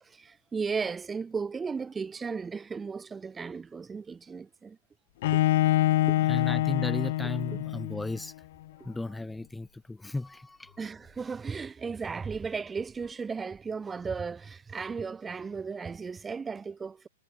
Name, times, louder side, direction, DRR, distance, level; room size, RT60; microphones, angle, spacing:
voice 1, 0.0-4.8 5.3-5.4 6.1-6.2 10.8-17.1, right 5 dB, 15° right, 3.0 m, -35 dB
Bowed string instrument, 5.2-8.2, left 16 dB, 55° left, 0.4 m, -25 dB
voice 2, 6.3-8.3 8.8-10.8, left 2 dB, 5° left, 3.7 m, -35 dB
figure-of-eight pair, 105°, 0 cm